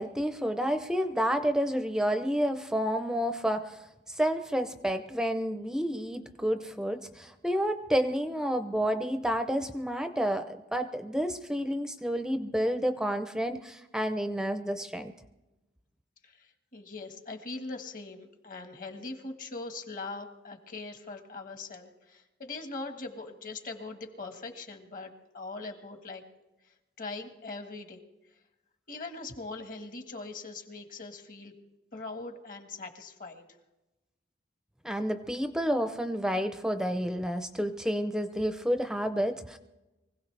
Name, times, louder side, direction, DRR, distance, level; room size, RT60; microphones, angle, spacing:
voice 1, 0.0-3.8 4.1-15.1 34.8-39.6, equal, 5° right, 8 dB, 0.6 m, -30 dB
voice 2, 16.2-26.2 27.0-28.0 28.9-31.5 31.9-33.4, left 3 dB, 45° left, 6 dB, 1.5 m, -41 dB
24.0 x 16.5 x 3.3 m, 1.0 s
head